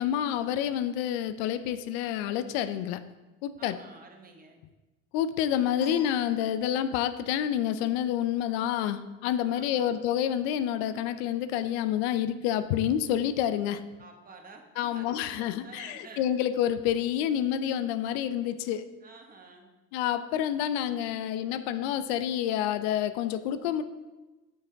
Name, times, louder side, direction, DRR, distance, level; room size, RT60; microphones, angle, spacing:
voice 1, 0.0-3.1 3.4-3.8 5.1-13.8 14.8-18.9 19.9-23.8, left 10 dB, 85° left, 12 dB, 0.5 m, -28 dB
voice 2, 3.6-4.6 9.5-10.0 14.0-16.6 19.0-19.7, right 3 dB, 30° right, 3 dB, 1.3 m, -50 dB
sound 1, 5.8-7.1, left 5 dB, 35° left, 2.3 m, -49 dB
9.0 x 5.8 x 3.5 m, 1.1 s
supercardioid pair, 95°, 30 cm